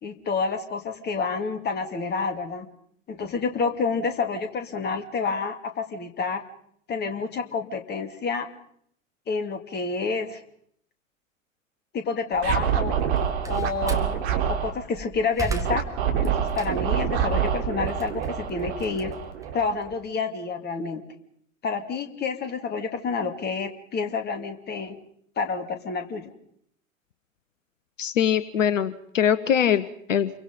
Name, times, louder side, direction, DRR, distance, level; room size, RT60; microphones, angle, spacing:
voice 1, 0.0-2.7 3.1-6.4 6.9-8.5 9.3-10.4 11.9-13.0 13.4-14.2 14.5-15.8 16.1-19.1 19.5-21.0 21.6-25.0 25.4-26.2, left 4 dB, 25° left, 7 dB, 2.7 m, -29 dB
Scratching (performance technique), 12.4-14.7 15.6-19.9, right 8 dB, 55° right, 3.7 m, -26 dB
Slam, 13.0-14.1 14.7-17.0 17.5-19.8, right 5 dB, 10° right, 2.3 m, -35 dB
voice 2, 28.0-30.3, left 9 dB, 65° left, 16 dB, 1.1 m, -23 dB
28.5 x 23.5 x 5.4 m, 0.69 s
figure-of-eight pair, 95°, 41 cm